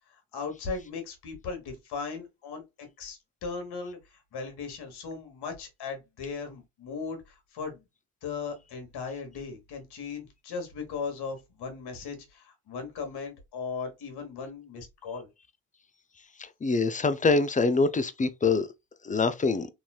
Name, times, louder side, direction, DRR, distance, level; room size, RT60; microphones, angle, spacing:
voice 1, 0.1-7.8 8.2-15.3, left 5 dB, 65° left, 1.3 m, -38 dB
voice 2, 16.4-18.7 19.0-19.7, left 4 dB, 20° left, 0.4 m, -25 dB
3.0 x 2.7 x 2.3 m
supercardioid pair, 55°, 41 cm